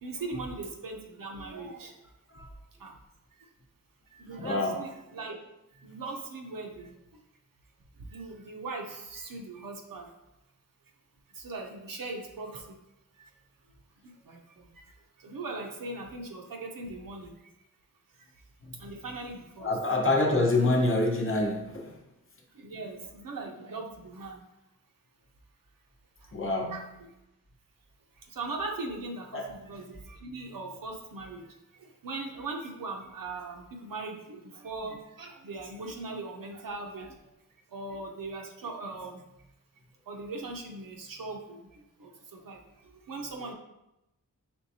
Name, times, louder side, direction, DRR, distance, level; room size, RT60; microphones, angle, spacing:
voice 1, 0.0-2.0 2.8-3.0 3.4-3.5 4.1-5.4 5.7-7.2 8.0-10.1 11.3-12.8 13.1-13.3 14.0-17.5 18.1-18.4 18.8-19.7 22.5-24.4 26.2-26.3 26.7-26.8 28.2-37.3 37.7-39.2 40.1-43.5, right 3 dB, 80° right, 1 dB, 0.7 m, -40 dB
voice 2, 4.4-4.8 18.6-18.8 19.6-22.0 26.3-26.9 29.3-29.5, left 2 dB, 40° left, 1 dB, 0.7 m, -26 dB
4.5 x 3.3 x 2.7 m, 0.91 s
wide cardioid pair, 95°, 33 cm